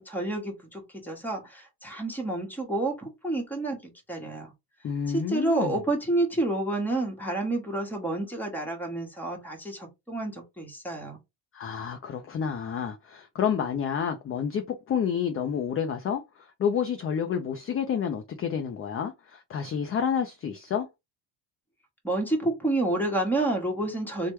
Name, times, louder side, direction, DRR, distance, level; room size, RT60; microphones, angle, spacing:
voice 1, 0.0-4.5 5.1-11.2 22.0-24.3, right 2 dB, 5° left, 1.1 m, -29 dB
voice 2, 4.8-5.8 11.5-20.9, left 7 dB, 30° left, 0.4 m, -29 dB
3.2 x 2.2 x 3.0 m
cardioid pair, 110°, 48 cm